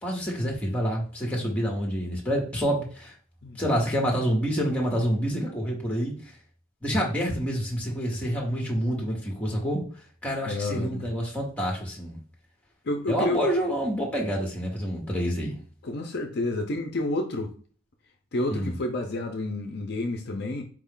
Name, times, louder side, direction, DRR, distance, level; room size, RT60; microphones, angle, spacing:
voice 1, 0.0-3.1 3.6-6.1 6.8-9.8 10.2-12.2 13.1-15.6 18.5-18.7, equal, 5° left, 1.1 m, -27 dB
voice 2, 10.4-11.1 12.8-13.4 15.8-17.5 18.3-20.6, left 2 dB, 55° left, 0.6 m, -29 dB
4.7 x 2.4 x 3.6 m
head